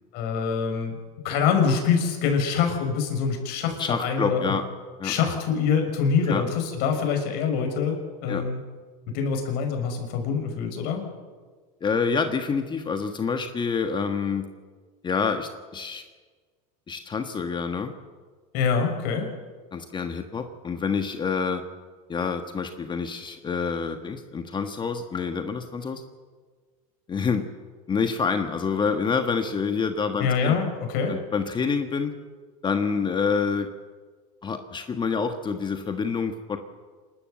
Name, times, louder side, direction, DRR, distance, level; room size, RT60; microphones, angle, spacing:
voice 1, 0.1-1.0 1.2-4.5 5.0-8.6 9.1-11.0 18.5-19.3 30.2-31.2, left 6 dB, 60° left, 4 dB, 5.5 m, -25 dB
voice 2, 3.8-4.6 5.0-5.1 6.3-6.4 8.3-8.4 11.8-14.5 15.0-16.0 16.9-17.9 19.7-21.6 22.1-26.0 27.1-27.5 27.9-30.6 31.1-32.1 32.6-33.7 34.4-36.6, left 5 dB, 25° left, 6 dB, 1.5 m, -27 dB
27.0 x 12.5 x 7.8 m, 1.5 s
supercardioid pair, 105°, 19 cm